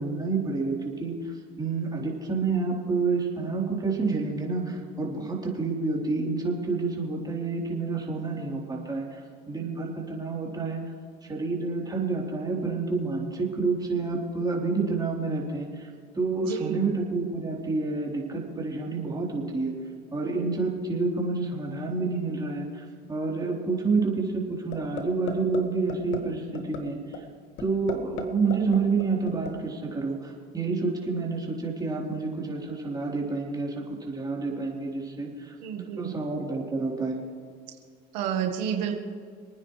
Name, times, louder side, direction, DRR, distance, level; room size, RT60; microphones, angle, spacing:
voice 1, 0.0-10.8 11.2-15.9 16.1-19.7 20.1-27.3 27.6-35.6 36.0-37.2, right 4 dB, 20° right, -3 dB, 3.8 m, -29 dB
voice 2, 16.4-16.8 35.6-36.1 38.1-38.9, right 9 dB, 85° right, 3 dB, 1.5 m, -30 dB
sound 1, 24.7-25.0 25.3-25.6 25.9-26.2 26.5-26.8 27.1-27.2 27.6-28.2 28.5-29.5, left 8 dB, 65° left, 1.8 m, -33 dB
26.5 x 9.5 x 3.3 m, 2.1 s
supercardioid pair, 90°, 21 cm